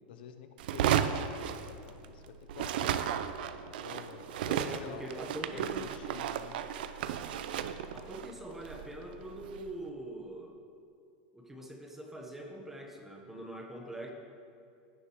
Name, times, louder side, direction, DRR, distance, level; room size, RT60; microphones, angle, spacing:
voice 1, 0.0-2.9 3.7-5.1 5.5-6.6, left 8 dB, 80° left, 8 dB, 0.6 m, -49 dB
sound 1, 0.6-2.2 2.5-9.7, right 9 dB, 75° right, 0.5 m, -34 dB
voice 2, 4.4-5.9 7.9-10.5 11.3-14.1, right 1 dB, 5° right, 1 dB, 1.0 m, -43 dB
16.0 x 6.5 x 3.1 m, 2.4 s
supercardioid pair, 145°, 5 cm